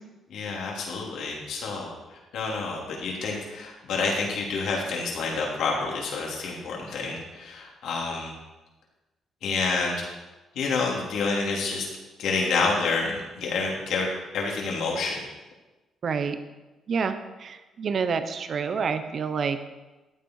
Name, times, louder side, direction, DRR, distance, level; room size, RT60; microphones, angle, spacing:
voice 1, 0.3-1.9 2.3-8.3 9.4-10.1 10.6-11.9 12.2-14.1 14.3-15.2, left 4 dB, 80° left, -2 dB, 3.6 m, -28 dB
voice 2, 16.0-16.4 16.9-19.6, right 5 dB, 50° right, 9 dB, 1.1 m, -28 dB
14.5 x 9.3 x 4.9 m, 1.1 s
cardioid pair, 90°, 0 cm